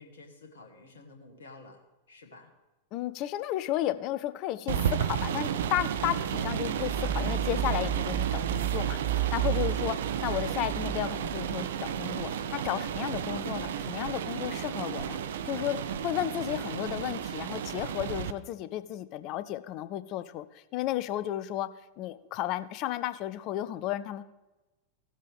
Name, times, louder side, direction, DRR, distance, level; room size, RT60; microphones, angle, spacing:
voice 1, 0.0-1.8 2.1-2.5, left 3 dB, 65° left, 3 dB, 1.7 m, -51 dB
voice 2, 2.9-10.0 10.2-15.2 15.4-20.4 20.7-21.7 22.0-24.2, left 14 dB, 40° left, 13 dB, 0.6 m, -33 dB
sound 1, 4.7-18.3, right 9 dB, 60° right, 0.5 m, -31 dB
16.5 x 7.4 x 3.5 m, 1.1 s
figure-of-eight pair, 90°, 0 cm